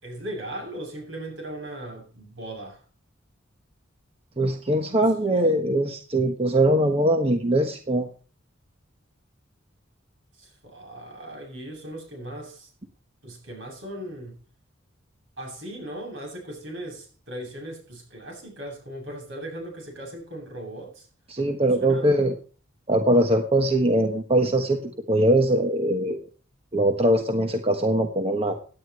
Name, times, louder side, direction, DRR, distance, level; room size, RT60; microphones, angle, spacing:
voice 1, 0.0-2.8 5.0-5.1 10.4-12.7 13.2-14.4 15.4-21.1 21.8-22.3, right 1 dB, 70° right, 7.9 m, -38 dB
voice 2, 4.4-8.1 21.3-22.3 22.9-26.2 26.7-28.5, right 1 dB, 30° right, 1.3 m, -22 dB
17.5 x 10.5 x 3.2 m
head